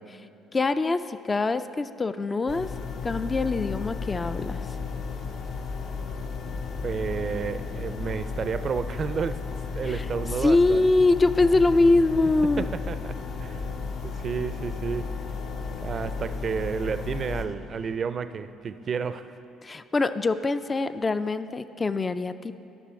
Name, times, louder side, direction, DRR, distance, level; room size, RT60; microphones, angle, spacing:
voice 1, 0.5-2.7 3.0-4.6 9.9-10.0 10.4-12.7 19.6-22.7, left 3 dB, 30° left, 12 dB, 0.3 m, -23 dB
sound 1, 2.5-17.4, left 5 dB, 60° left, 0.7 m, -34 dB
sound 2, 4.0-17.9, equal, 85° left, 2.1 m, -49 dB
voice 2, 6.8-9.4 9.7-10.9 12.6-13.1 13.4-13.6 14.0-15.1 15.7-19.3, right 6 dB, 45° right, 12 dB, 0.4 m, -31 dB
13.0 x 6.1 x 4.2 m, 2.7 s
hypercardioid pair, 50°, 0 cm